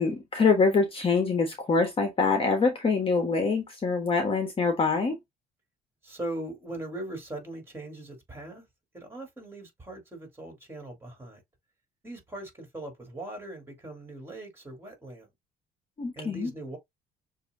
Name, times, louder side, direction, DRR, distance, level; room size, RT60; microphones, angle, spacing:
voice 1, 0.0-5.2 16.0-16.5, left 4 dB, 30° left, 1.3 m, -25 dB
voice 2, 6.0-8.7 8.9-11.4 12.0-15.3 16.2-16.8, right 1 dB, 15° right, 3.6 m, -40 dB
6.7 x 2.9 x 2.7 m
cardioid pair, 110°, 17 cm